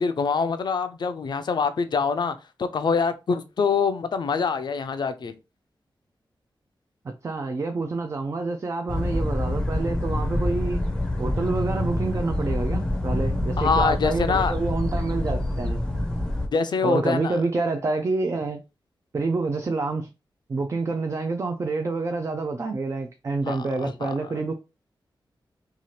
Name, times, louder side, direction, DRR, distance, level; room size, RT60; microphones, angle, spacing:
voice 1, 0.0-5.3 13.6-14.5 16.5-17.4 23.4-24.4, left 5 dB, 60° left, 0.4 m, -25 dB
voice 2, 7.0-10.8 11.2-15.8 16.8-18.6 19.1-20.1 20.5-24.5, right 3 dB, 35° right, 0.3 m, -27 dB
sound 1, 8.9-16.5, left 1 dB, 10° left, 0.6 m, -26 dB
2.8 x 2.4 x 3.1 m
wide cardioid pair, 120°, 9 cm